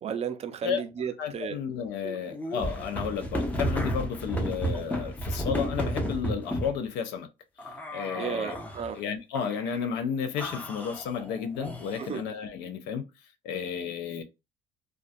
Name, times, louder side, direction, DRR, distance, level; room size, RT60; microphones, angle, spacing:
voice 1, 0.0-1.6 2.0-2.2 8.2-9.0 12.0-12.2, right 7 dB, 40° right, 0.4 m, -34 dB
voice 2, 1.2-7.3 7.9-8.6 8.9-13.1 13.4-14.2, left 7 dB, 90° left, 0.5 m, -32 dB
sound 1, 2.3-6.8 7.6-8.9 9.3-9.9 10.4-12.2, equal, 10° left, 0.6 m, -33 dB
2.4 x 2.2 x 2.5 m
cardioid pair, 110°, 17 cm